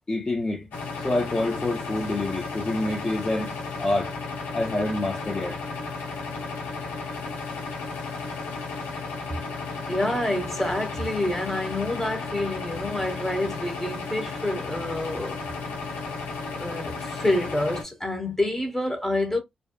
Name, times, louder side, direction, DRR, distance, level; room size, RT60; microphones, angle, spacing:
voice 1, 0.1-0.7 1.0-4.1 4.5-5.6, left 2 dB, 30° left, 0.6 m, -27 dB
sound 1, 0.7-17.8, left 4 dB, 75° left, 0.7 m, -34 dB
voice 2, 9.9-15.4 16.6-19.4, left 1 dB, 10° left, 1.2 m, -27 dB
2.7 x 2.2 x 2.2 m
hypercardioid pair, 40°, 3 cm